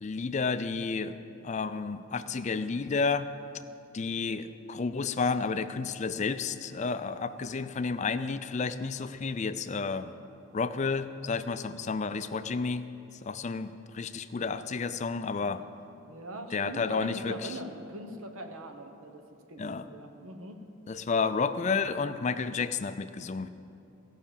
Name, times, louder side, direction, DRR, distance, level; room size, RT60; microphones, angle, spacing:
voice 1, 0.0-1.2 1.4-3.3 3.9-10.1 10.5-12.8 13.2-15.6 16.5-17.6 19.6-19.9 20.9-23.5, left 4 dB, 35° left, 11 dB, 0.4 m, -31 dB
voice 2, 15.2-15.7 16.1-19.2 19.5-20.6, right 1 dB, 85° right, 5 dB, 1.1 m, -42 dB
17.0 x 5.8 x 7.1 m, 2.8 s
head